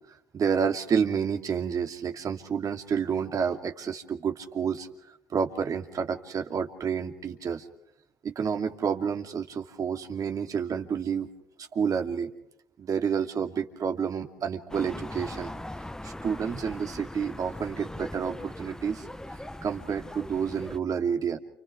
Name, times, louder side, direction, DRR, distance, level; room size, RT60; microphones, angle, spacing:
voice 1, 0.3-4.9 5.3-7.6 8.2-11.3 11.6-12.3 12.8-15.5 16.0-19.1 19.6-21.4, right 7 dB, 45° right, 5 dB, 2.7 m, -29 dB
sound 1, 14.7-20.8, left 1 dB, 5° left, 1.1 m, -40 dB
30.0 x 29.0 x 3.4 m, 0.81 s
hypercardioid pair, 60°, 8 cm